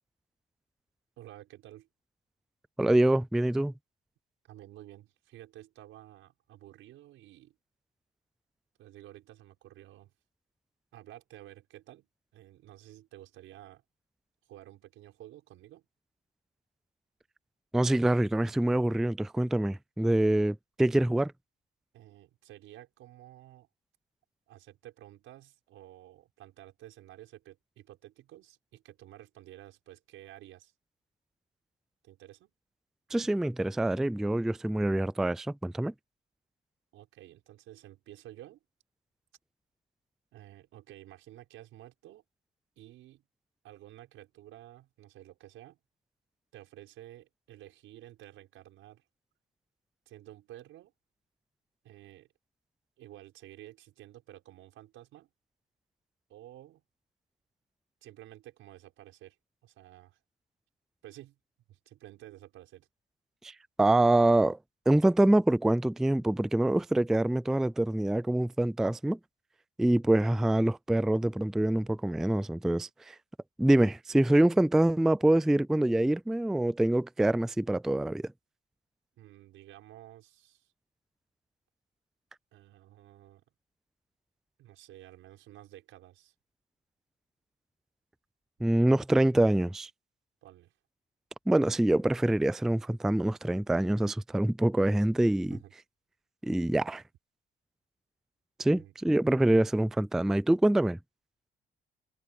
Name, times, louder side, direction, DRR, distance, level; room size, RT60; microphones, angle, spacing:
voice 1, 1.2-1.9 4.4-7.6 8.8-10.1 10.9-13.8 14.5-15.9 21.9-23.7 24.5-30.7 32.0-32.5 36.9-38.6 40.3-42.2 42.8-43.2 43.6-45.8 46.5-49.0 50.1-50.9 51.8-52.3 53.0-55.3 56.3-56.8 58.0-59.4 59.6-60.2 61.0-61.4 61.7-62.9 79.2-80.7 82.5-83.4 84.6-86.3 90.4-90.7 95.5-95.7 98.7-98.9, right 14 dB, 90° right, 6.3 m, -52 dB
voice 2, 2.8-3.7 17.7-21.3 33.1-35.9 63.4-63.5 63.8-64.6 64.9-69.2 69.8-73.2 73.6-78.3 88.6-89.9 91.5-95.6 96.4-97.0 98.6-101.0, right 1 dB, ahead, 0.3 m, -25 dB
cardioid pair, 90°, 20 cm